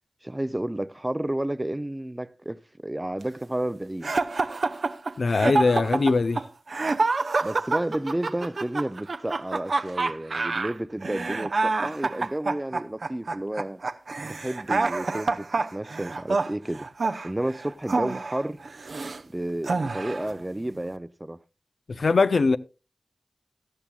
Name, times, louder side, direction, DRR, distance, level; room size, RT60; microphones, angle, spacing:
voice 1, 0.2-4.1 7.4-13.8 14.3-16.9 17.2-18.6 19.3-21.4, right 1 dB, 20° right, 0.5 m, -31 dB
sound 1, 4.0-19.2 19.6-20.3, right 3 dB, 70° right, 0.7 m, -27 dB
voice 2, 5.2-6.4 21.9-22.6, left 3 dB, 80° left, 0.6 m, -21 dB
17.0 x 12.0 x 2.4 m
wide cardioid pair, 55°, 0 cm